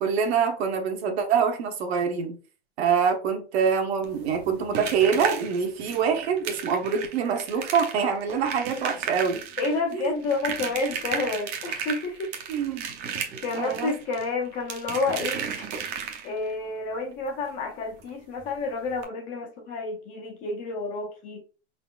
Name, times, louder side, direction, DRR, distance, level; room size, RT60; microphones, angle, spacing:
voice 1, 0.0-2.4 2.8-9.4 9.9-10.1 12.5-12.9 13.5-13.9, right 6 dB, 65° right, 1.1 m, -25 dB
sound 1, 4.0-16.5 18.0-18.1 18.4-18.5 18.9-19.0, right 7 dB, 30° right, 0.6 m, -35 dB
voice 2, 9.6-12.3 13.4-15.7 16.2-21.4, left 3 dB, 25° left, 0.5 m, -30 dB
4.5 x 3.9 x 2.3 m
supercardioid pair, 160°, 35 cm